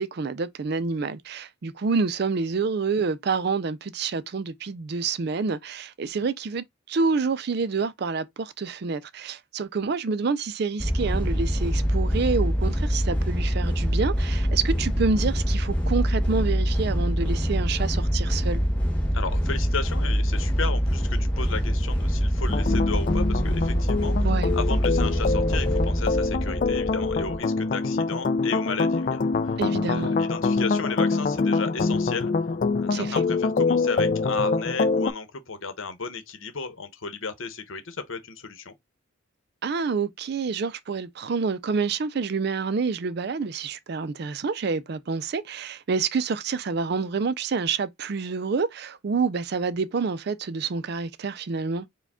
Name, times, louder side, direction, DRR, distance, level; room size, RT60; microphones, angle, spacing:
voice 1, 0.0-18.6 24.2-24.5 29.6-30.2 32.9-33.2 39.6-51.9, right 4 dB, 50° right, 0.4 m, -28 dB
sound 1, 10.8-27.4, equal, 5° left, 0.9 m, -24 dB
voice 2, 19.1-24.3 24.5-29.6 29.9-32.3 32.7-38.7, left 4 dB, 75° left, 0.9 m, -34 dB
sound 2, 22.5-35.1, left 4 dB, 40° left, 0.3 m, -25 dB
4.8 x 2.2 x 3.5 m
head